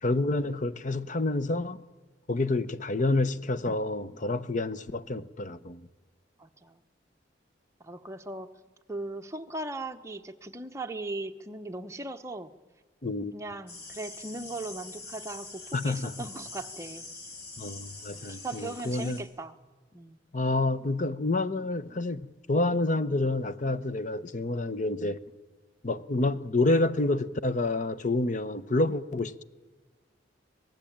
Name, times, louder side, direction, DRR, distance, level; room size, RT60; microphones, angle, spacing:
voice 1, 0.0-1.8 2.3-5.8 13.0-13.3 15.7-16.3 17.6-19.2 20.3-22.2 22.5-25.2 25.8-29.4, left 2 dB, 40° left, 0.8 m, -28 dB
voice 2, 6.4-6.8 7.8-8.5 8.9-12.5 13.3-17.1 18.1-19.6 19.9-20.2, right 2 dB, 15° right, 1.0 m, -38 dB
sound 1, 13.7-19.2, left 3 dB, 60° left, 5.2 m, -44 dB
26.0 x 18.5 x 8.8 m
head